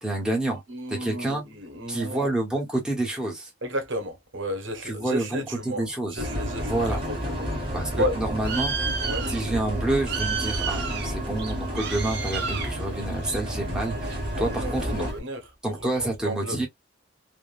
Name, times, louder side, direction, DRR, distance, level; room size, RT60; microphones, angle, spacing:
voice 1, 0.0-0.6 0.9-1.4 1.9-3.5 4.8-6.3 6.7-7.0 7.7-8.7 9.3-15.1 15.6-16.7, right 2 dB, 5° right, 1.1 m, -28 dB
voice 2, 0.7-2.3 3.6-5.8 6.1-8.1 9.0-9.3 14.4-15.4 15.7-16.6, equal, 80° right, 1.1 m, -33 dB
sound 1, 6.2-15.1, equal, 30° right, 1.4 m, -32 dB
Bird, 6.2-15.2, right 4 dB, 60° right, 0.8 m, -33 dB
3.6 x 2.2 x 2.4 m
head